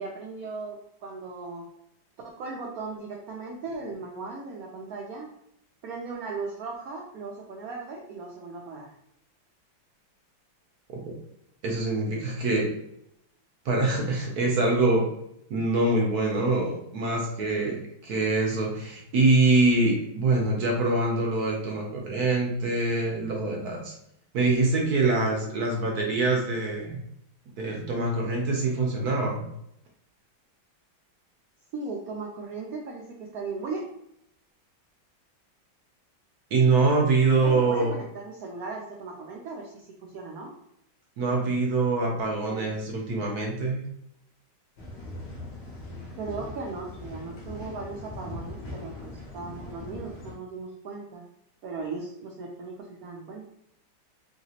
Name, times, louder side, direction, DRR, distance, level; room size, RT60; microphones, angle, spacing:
voice 1, 0.0-1.7 2.2-5.3 5.8-8.9 31.7-33.9 37.4-40.5 42.5-42.7 46.2-51.3 51.6-53.5, right 3 dB, 85° right, -1 dB, 0.8 m, -37 dB
voice 2, 11.6-12.7 13.6-15.1 15.5-23.9 24.3-27.0 27.6-29.5 36.5-37.9 41.2-43.8, right 3 dB, 65° right, -1 dB, 1.1 m, -24 dB
sound 1, 44.8-50.3, left 2 dB, 60° left, 0.7 m, -40 dB
3.3 x 2.8 x 2.8 m, 0.76 s
omnidirectional pair, 2.1 m